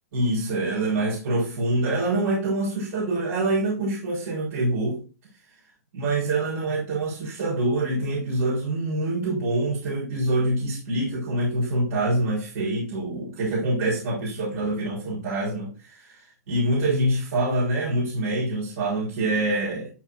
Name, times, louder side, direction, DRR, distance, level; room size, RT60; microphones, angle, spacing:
voice 1, 0.1-5.0 5.9-19.9, right 2 dB, 65° right, -7 dB, 4.8 m, -25 dB
13.5 x 4.8 x 2.7 m, 0.34 s
hypercardioid pair, 125°, 9 cm